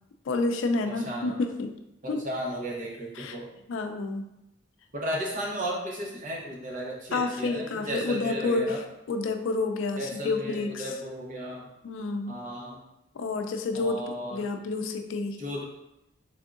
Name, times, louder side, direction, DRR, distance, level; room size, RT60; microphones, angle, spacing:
voice 1, 0.3-1.7 2.1-2.2 3.2-3.4 3.7-4.2 7.1-8.8 9.1-10.9 11.8-12.4 13.1-15.4, left 3 dB, 85° left, 6 dB, 0.4 m, -29 dB
voice 2, 0.9-1.3 2.0-3.5 5.0-8.8 9.9-11.7 12.3-12.8 13.7-14.4 15.4-15.6, equal, 40° right, -3 dB, 0.8 m, -34 dB
3.6 x 3.5 x 2.5 m, 0.86 s
head